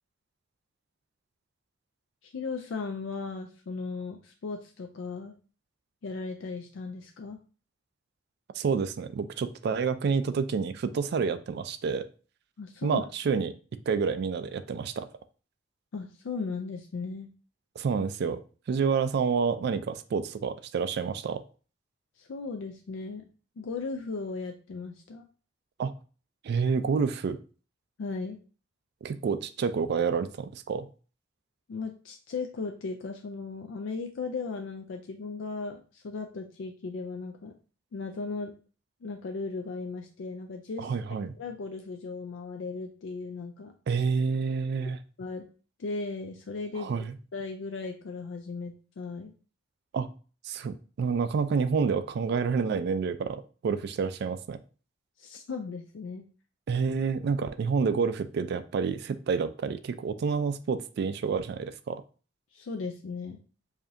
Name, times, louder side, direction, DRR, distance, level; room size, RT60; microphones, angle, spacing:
voice 1, 2.2-5.4 6.0-7.4 12.6-13.0 15.9-17.3 22.2-23.2 23.6-25.2 28.0-28.4 31.7-37.5 37.9-38.5 39.0-40.9 41.3-43.7 45.2-45.5 45.8-47.1 47.3-49.3 55.2-56.2 62.5-63.4, left 4 dB, 75° left, 5 dB, 0.4 m, -36 dB
voice 2, 8.5-12.1 12.8-13.5 13.9-15.1 17.8-18.4 18.7-21.4 25.8-25.9 26.4-27.4 29.0-30.9 40.8-41.3 43.9-45.0 46.8-47.1 49.9-50.1 50.4-54.6 56.7-62.0, right 5 dB, 60° right, 11 dB, 0.3 m, -28 dB
4.8 x 2.7 x 2.5 m, 0.37 s
head